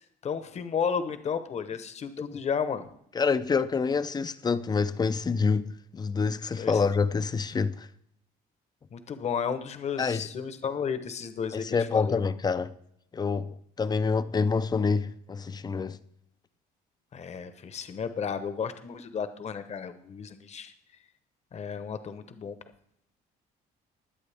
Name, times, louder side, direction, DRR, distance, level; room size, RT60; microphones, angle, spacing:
voice 1, 0.0-2.9 6.6-6.8 8.9-12.3 17.1-20.7 21.5-22.6, left 6 dB, 40° left, 1.0 m, -33 dB
voice 2, 3.1-7.9 10.0-10.3 11.5-12.7 13.1-16.0, left 5 dB, 25° left, 0.5 m, -27 dB
21.5 x 8.0 x 3.5 m
cardioid pair, 110°, 17 cm